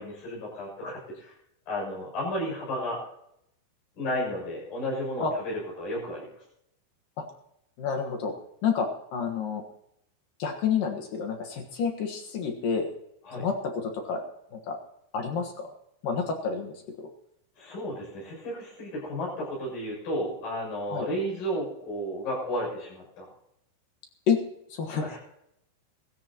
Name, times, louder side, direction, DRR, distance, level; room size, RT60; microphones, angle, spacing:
voice 1, 0.0-1.3 1.7-3.0 3.9-6.3 13.2-13.4 17.6-23.3 24.9-25.2, equal, 45° left, -4 dB, 8.5 m, -33 dB
voice 2, 7.8-8.3 8.6-9.6 10.4-12.9 13.3-14.2 14.5-14.8 15.1-15.7 16.0-16.8 20.9-21.1 24.3-24.4 24.7-25.0, left 6 dB, 65° left, 4 dB, 2.2 m, -29 dB
23.5 x 14.0 x 3.0 m, 0.79 s
omnidirectional pair, 6.0 m